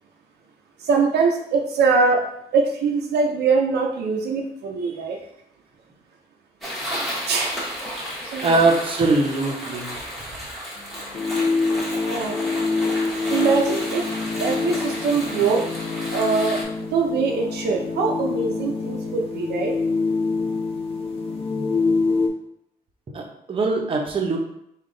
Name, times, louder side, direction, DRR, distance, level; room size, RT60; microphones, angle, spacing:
voice 1, 0.8-2.3 2.5-5.2 7.3-7.5 7.9-8.0 8.3-8.5 12.1-12.4 13.3-14.1 14.4-15.6 16.1-19.7, right 4 dB, 80° right, 1 dB, 0.6 m, -22 dB
sound 1, 6.6-16.6, equal, ahead, 1.1 m, -33 dB
voice 2, 8.4-10.2 23.1-24.4, right 3 dB, 30° right, 0 dB, 0.7 m, -22 dB
sound 2, 10.8-22.3, left 4 dB, 35° left, 0.6 m, -25 dB
3.7 x 2.3 x 3.8 m, 0.77 s
cardioid pair, 110°, 17 cm